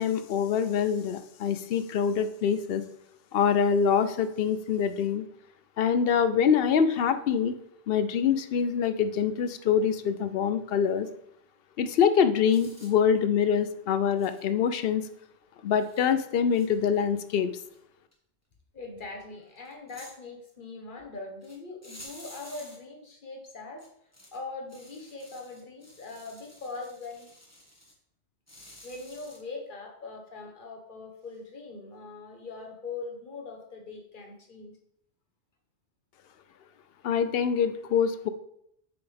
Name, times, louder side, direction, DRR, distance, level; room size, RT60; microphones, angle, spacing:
voice 1, 0.0-2.8 3.3-5.2 5.8-7.5 7.9-11.1 11.8-15.0 15.6-17.5 37.0-38.3, left 7 dB, 65° left, 11 dB, 0.8 m, -25 dB
sound 1, 12.5-12.9 14.2-14.5 15.2-15.3 15.7-16.1 16.5-17.3 17.6-17.8 18.1-18.2 19.6-20.2 21.4-21.6 21.8-22.8 23.8-24.4 24.7-27.9 28.5-29.4, left 1 dB, 15° left, 1.4 m, -51 dB
voice 2, 18.7-23.9 24.3-27.3 28.8-34.8, left 3 dB, 50° left, 2 dB, 1.3 m, -41 dB
7.0 x 5.8 x 3.4 m, 0.74 s
omnidirectional pair, 1.1 m